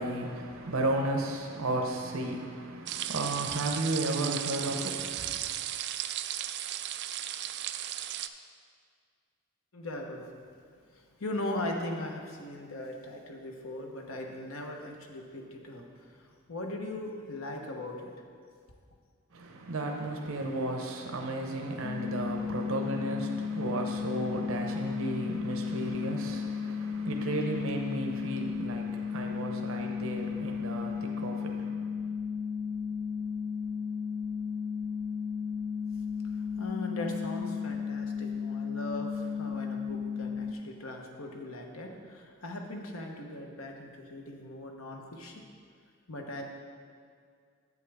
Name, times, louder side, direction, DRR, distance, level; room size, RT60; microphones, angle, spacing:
voice 1, 0.0-5.4 19.3-31.9, right 2 dB, 70° right, 0.8 m, -34 dB
sound 1, 2.9-8.3, right 12 dB, 55° right, 0.3 m, -35 dB
voice 2, 9.7-10.3 10.9-18.1 36.3-45.5 46.1-46.4, left 1 dB, 70° left, 1.1 m, -39 dB
sound 2, 21.8-40.5, left 6 dB, 45° left, 0.4 m, -34 dB
8.4 x 8.3 x 3.5 m
head